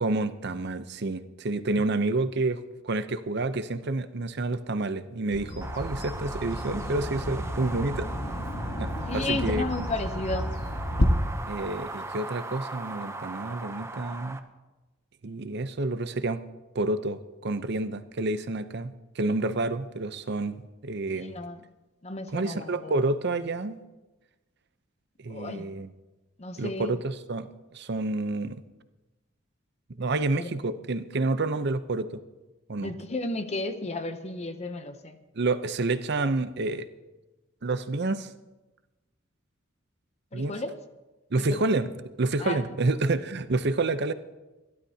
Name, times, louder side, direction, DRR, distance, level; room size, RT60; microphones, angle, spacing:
voice 1, 0.0-8.1 8.8-9.6 11.4-14.4 15.2-16.4 16.7-21.3 22.3-23.8 25.2-25.9 26.6-28.6 29.9-32.2 32.7-32.9 35.3-36.9 37.6-38.3 40.3-40.5 41.3-41.9 42.2-44.1, right 2 dB, 55° right, 11 dB, 0.7 m, -29 dB
Bird vocalization bird call bird song, 5.3-11.0, left 1 dB, 60° left, 1.4 m, -32 dB
sound 1, 5.6-14.4, right 2 dB, 15° right, 0.7 m, -39 dB
voice 2, 9.1-10.6 21.2-21.6 22.0-22.9 25.3-25.7 26.4-27.0 30.3-30.5 32.8-35.2 40.3-40.8 41.5-41.7 42.4-42.6, left 2 dB, 35° left, 9 dB, 0.7 m, -33 dB
26.0 x 12.0 x 2.8 m, 1.1 s
head